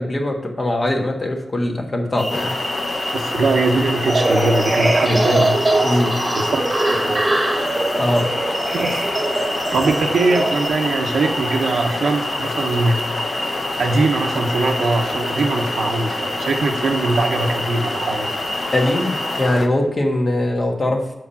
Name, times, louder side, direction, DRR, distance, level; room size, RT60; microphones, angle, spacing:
voice 1, 0.0-2.5 5.1-5.4 5.8-6.2 7.9-8.3 18.7-21.0, left 1 dB, 40° left, 1 dB, 1.4 m, -21 dB
sound 1, 2.2-19.5, equal, 5° right, 1.1 m, -29 dB
sound 2, 2.3-19.7, left 3 dB, 70° left, 0.7 m, -28 dB
voice 2, 3.1-5.6 5.9-6.0 6.3-7.3 8.7-9.0 9.7-13.1 13.8-18.3, right 3 dB, 80° right, 3 dB, 1.0 m, -21 dB
sound 3, 4.1-10.7, right 2 dB, 25° right, 1.2 m, -22 dB
7.0 x 4.8 x 5.6 m, 1.0 s
wide cardioid pair, 85°, 0 cm